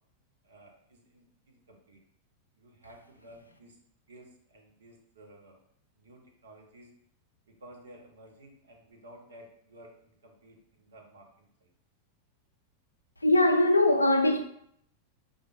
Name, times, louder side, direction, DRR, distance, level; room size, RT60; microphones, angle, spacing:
voice 1, 0.4-2.0 2.6-3.8 4.1-5.6 5.9-6.9 7.6-11.7, right 1 dB, 65° right, 0.7 m, -54 dB
voice 2, 13.2-14.4, left 1 dB, 80° left, 0.4 m, -21 dB
4.9 x 2.5 x 2.4 m
figure-of-eight pair, 90°, 0 cm